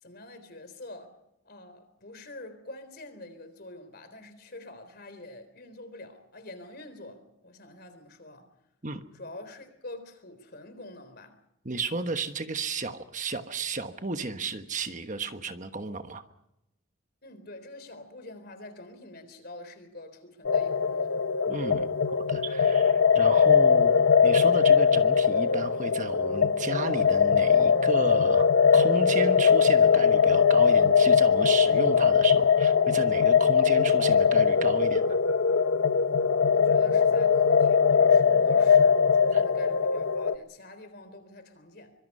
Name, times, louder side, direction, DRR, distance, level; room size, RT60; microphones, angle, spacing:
voice 1, 0.0-1.2 1.5-8.5 9.1-11.4 17.2-21.1 36.5-41.9, left 2 dB, 50° left, 3.8 m, -45 dB
voice 2, 11.6-16.2 21.5-23.9 24.2-35.2 39.3-39.4, right 3 dB, 35° right, 1.2 m, -33 dB
sound 1, 20.4-40.4, left 6 dB, 80° left, 0.9 m, -21 dB
25.0 x 23.0 x 5.6 m
head